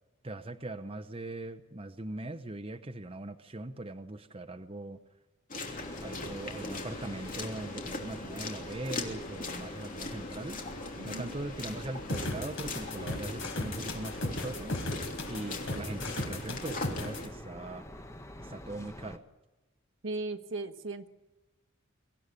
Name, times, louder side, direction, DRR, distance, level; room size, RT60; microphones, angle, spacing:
voice 1, 0.2-5.0 6.0-10.6 11.0-14.7 15.3-17.8 18.4-19.2, right 2 dB, 25° right, 7 dB, 0.9 m, -40 dB
sound 1, 5.5-17.3, left 2 dB, 40° left, 3.1 m, -40 dB
sound 2, 5.7-19.2, left 1 dB, 15° left, 1.1 m, -47 dB
voice 2, 10.9-11.3 20.0-21.1, right 2 dB, 60° right, 9 dB, 1.4 m, -37 dB
sound 3, 12.1-17.2, left 1 dB, 65° left, 4.2 m, -36 dB
24.0 x 16.0 x 9.8 m, 1.1 s
head